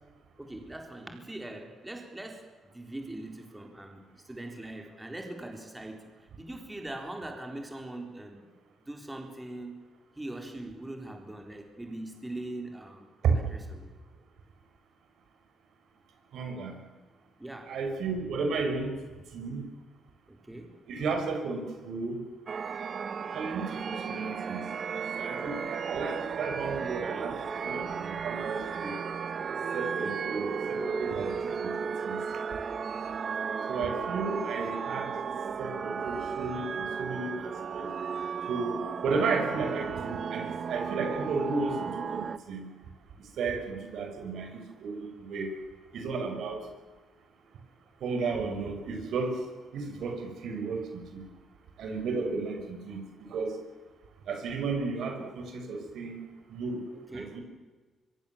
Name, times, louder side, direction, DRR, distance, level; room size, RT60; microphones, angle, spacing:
voice 1, 0.4-8.5 8.8-9.8 10.2-13.1 13.5-13.9 17.4-17.8 20.3-20.8 56.9-57.4, right 1 dB, 10° right, 3 dB, 4.1 m, -41 dB
voice 2, 16.3-16.8 17.7-19.0 19.3-19.6 20.9-22.2 23.3-24.6 25.2-29.0 29.7-32.2 33.7-35.1 35.6-37.9 38.5-42.7 43.2-45.5 45.9-46.7 48.0-49.5 49.7-51.2 51.8-53.6 54.2-56.2 56.5-56.8 57.1-57.4, right 4 dB, 75° right, 4 dB, 6.2 m, -33 dB
sound 1, 22.5-42.4, right 6 dB, 50° right, 1.2 m, -34 dB
25.0 x 23.5 x 7.4 m, 1.3 s
cardioid pair, 100°, 0 cm